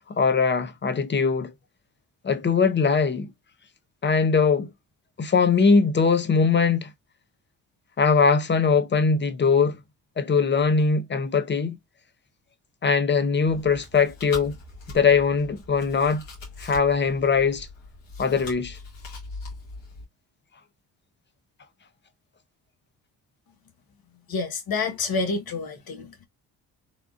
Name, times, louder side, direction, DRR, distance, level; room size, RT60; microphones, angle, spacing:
voice 1, 0.1-1.5 2.2-3.3 4.0-4.7 5.2-6.9 8.0-9.8 10.2-11.8 12.8-14.6 14.9-16.2 16.6-17.7 18.2-18.8, left 5 dB, 25° left, 0.6 m, -21 dB
Chewing mastication, 13.4-20.0, left 3 dB, 70° left, 1.8 m, -41 dB
voice 2, 24.3-26.2, left 4 dB, 55° left, 1.2 m, -28 dB
3.5 x 2.4 x 2.4 m
hypercardioid pair, 50°, 45 cm